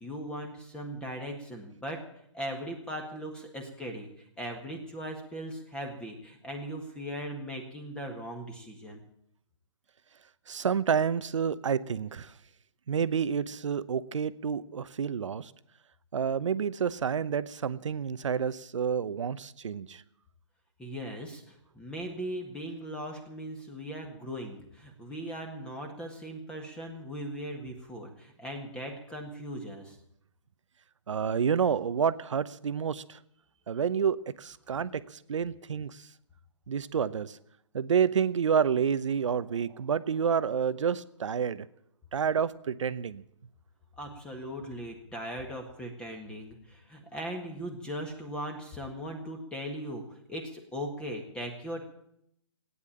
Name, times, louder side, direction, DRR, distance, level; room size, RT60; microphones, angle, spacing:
voice 1, 0.0-2.0 2.3-9.0 20.8-30.0 44.0-50.0 50.3-51.8, equal, 5° left, 1.7 m, -39 dB
voice 2, 10.5-12.3 12.9-15.5 16.1-20.0 31.1-33.2 33.7-35.0 35.3-36.0 36.7-37.4 37.7-41.7 42.1-43.2, right 7 dB, 70° right, 0.9 m, -29 dB
16.5 x 9.8 x 8.7 m
hypercardioid pair, 145°, 16 cm